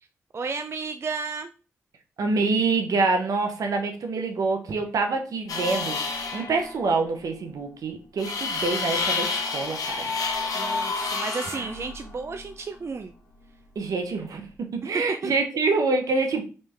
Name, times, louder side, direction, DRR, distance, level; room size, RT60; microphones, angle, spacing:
voice 1, 0.3-1.5 10.5-13.1 14.8-14.9, right 4 dB, 45° right, 8 dB, 0.3 m, -33 dB
voice 2, 2.2-10.1 11.6-11.7 13.8-16.4, right 3 dB, 75° right, 5 dB, 0.7 m, -26 dB
sound 1, 5.5-6.8 8.2-12.5, left 4 dB, 80° left, 0.7 m, -29 dB
3.2 x 3.1 x 3.3 m, 0.35 s
supercardioid pair, 40°, 6 cm